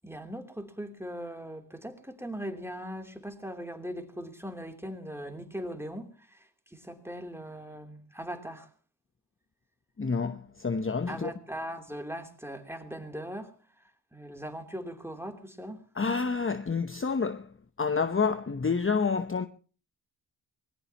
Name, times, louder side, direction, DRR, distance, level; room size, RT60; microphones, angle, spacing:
voice 1, 0.0-8.7 11.1-13.5 14.1-15.8, equal, 5° right, 3.2 m, -40 dB
voice 2, 10.0-11.3 16.0-17.5 17.8-19.5, left 5 dB, 30° left, 0.9 m, -28 dB
24.0 x 19.0 x 3.0 m
cardioid pair, 45°, 44 cm